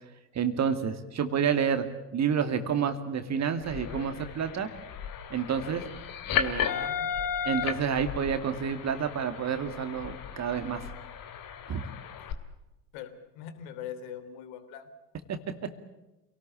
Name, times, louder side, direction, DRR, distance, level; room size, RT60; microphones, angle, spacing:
voice 1, 0.3-1.9 2.1-4.7 5.3-5.8 6.3-6.8 7.4-10.9 11.7-11.9, right 7 dB, 35° right, 8 dB, 2.3 m, -29 dB
sound 1, 3.6-12.3, left 8 dB, 45° left, 2.6 m, -35 dB
voice 2, 5.5-6.1 6.4-7.2 12.9-14.9 15.3-15.4, left 9 dB, 60° left, 10 dB, 3.1 m, -43 dB
28.0 x 18.5 x 8.7 m, 1.0 s
figure-of-eight pair, 70°, 47 cm